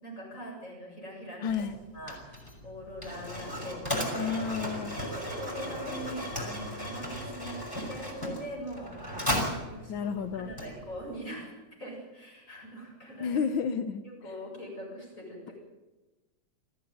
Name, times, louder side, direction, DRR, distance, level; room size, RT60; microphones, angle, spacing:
voice 1, 0.0-1.7 1.9-4.3 5.1-7.6 7.9-8.9 9.7-11.5 11.8-13.4 14.0-15.5, equal, 25° left, -1 dB, 8.0 m, -42 dB
voice 2, 1.4-1.8 4.1-5.1 9.9-10.5 13.2-14.0, left 6 dB, 65° left, 9 dB, 1.2 m, -31 dB
Mechanisms, 1.5-11.2, equal, 5° left, 5.9 m, -36 dB
23.5 x 15.0 x 9.4 m, 1.1 s
omnidirectional pair, 3.3 m